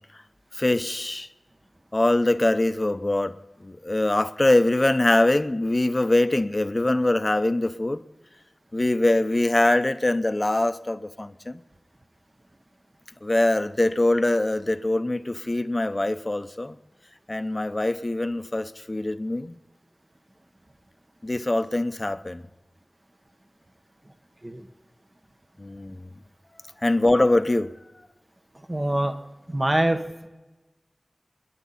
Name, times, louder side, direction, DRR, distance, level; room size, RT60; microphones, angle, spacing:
voice 1, 0.5-1.3 1.9-3.4 3.6-8.0 8.7-11.6 13.2-16.8 17.3-19.6 21.2-22.4 25.6-26.1 26.8-27.7, left 2 dB, 35° left, 0.7 m, -23 dB
voice 2, 28.7-29.1 29.5-30.0, right 1 dB, 35° right, 1.2 m, -24 dB
29.0 x 10.5 x 4.2 m
wide cardioid pair, 65°, 0 cm